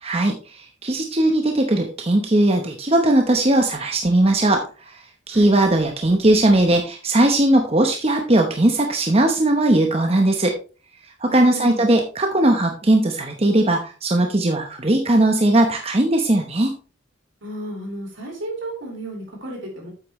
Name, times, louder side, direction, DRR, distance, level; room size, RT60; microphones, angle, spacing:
voice 1, 0.0-10.6 11.2-16.8, right 1 dB, 30° right, 4 dB, 0.9 m, -19 dB
voice 2, 11.3-11.8 17.4-19.9, right 2 dB, 75° right, 0 dB, 4.3 m, -33 dB
8.5 x 8.4 x 3.1 m, 0.34 s
head